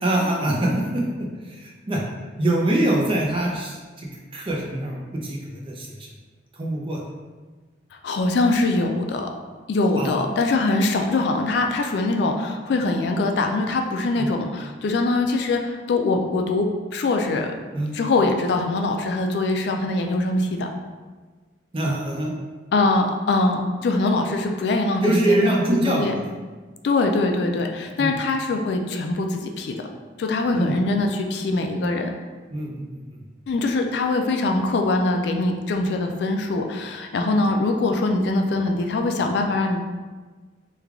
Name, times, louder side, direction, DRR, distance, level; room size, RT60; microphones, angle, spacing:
voice 1, 0.0-2.0 2.4-5.9 6.6-7.0 10.0-10.1 14.2-14.3 17.7-18.0 21.7-22.3 25.0-26.0 28.0-28.1 30.5-30.7 32.5-33.0, right 1 dB, 30° right, -2 dB, 0.5 m, -24 dB
voice 2, 7.9-9.3 9.7-17.5 17.9-20.7 22.7-25.6 25.8-26.1 26.8-29.9 30.2-32.1 33.5-39.8, left 2 dB, 60° left, 4 dB, 0.3 m, -23 dB
3.2 x 2.3 x 3.5 m, 1.4 s
head